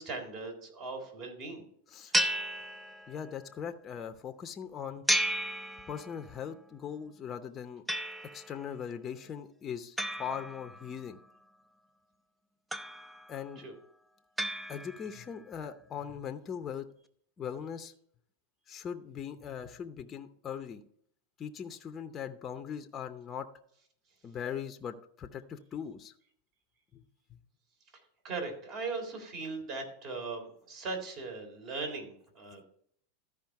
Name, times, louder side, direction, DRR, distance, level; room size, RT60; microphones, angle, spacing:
voice 1, 0.0-1.6 2.0-2.3 13.6-13.7 28.2-32.7, right 3 dB, 45° right, 3 dB, 3.6 m, -39 dB
sound 1, 2.1-3.4 5.1-6.4 7.9-8.6 10.0-11.1 12.7-13.4 14.4-15.3, right 1 dB, 5° right, 0.6 m, -33 dB
voice 2, 3.1-5.0 5.9-7.8 8.3-11.2 13.3-13.6 14.7-16.9 17.4-17.9 18.7-20.8 21.4-23.5 24.2-26.1 26.9-27.0 27.3-27.4, left 8 dB, 25° left, 7 dB, 0.8 m, -40 dB
13.5 x 5.0 x 4.7 m, 0.65 s
hypercardioid pair, 120°, 0 cm